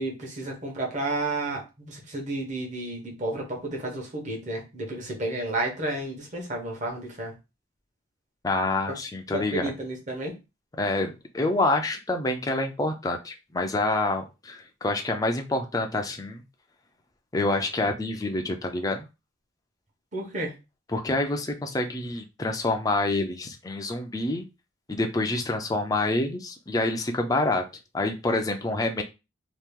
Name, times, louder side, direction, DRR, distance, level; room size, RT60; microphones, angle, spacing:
voice 1, 0.0-7.3 8.9-9.0 9.3-10.3 20.1-20.5, right 2 dB, 40° right, 0 dB, 1.2 m, -31 dB
voice 2, 8.4-9.7 10.8-16.4 17.3-19.1 20.9-24.5 24.9-27.6 27.9-29.0, left 2 dB, 20° left, 4 dB, 0.4 m, -27 dB
2.9 x 2.4 x 3.6 m, 0.27 s
head